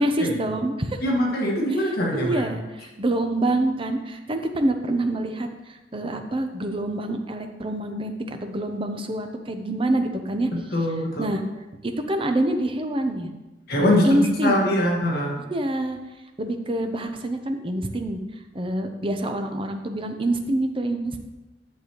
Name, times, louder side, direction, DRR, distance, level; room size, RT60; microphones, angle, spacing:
voice 1, 0.0-1.0 2.1-10.5 11.2-11.4 11.8-13.3 13.8-14.7 15.4-16.0 16.4-18.2 18.5-21.2, right 1 dB, 30° right, 6 dB, 0.7 m, -26 dB
voice 2, 1.0-2.4 10.5-11.3 13.7-15.4, left 1 dB, 60° left, -2 dB, 1.7 m, -23 dB
10.5 x 6.8 x 3.1 m, 1.1 s
head